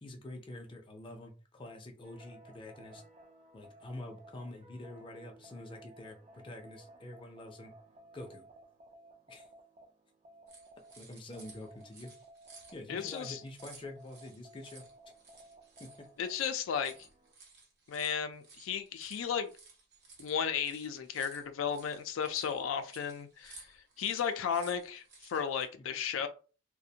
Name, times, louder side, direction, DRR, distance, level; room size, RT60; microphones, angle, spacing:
voice 1, 0.0-3.0 3.5-7.7 8.1-8.4 9.3-9.5 11.0-12.1 12.7-14.8 15.8-16.1 25.8-25.9, left 1 dB, 25° left, 2 dB, 0.4 m, -46 dB
sound 1, 2.0-10.9 11.3-17.3, right 1 dB, 35° right, 0.4 m, -57 dB
sound 2, 10.5-25.7, right 3 dB, 55° right, 0.8 m, -56 dB
voice 2, 12.9-13.4 16.2-16.9 17.9-19.5 20.2-23.6 24.0-26.3, left 7 dB, 90° left, 8 dB, 0.4 m, -34 dB
2.4 x 2.1 x 2.7 m, 0.36 s
head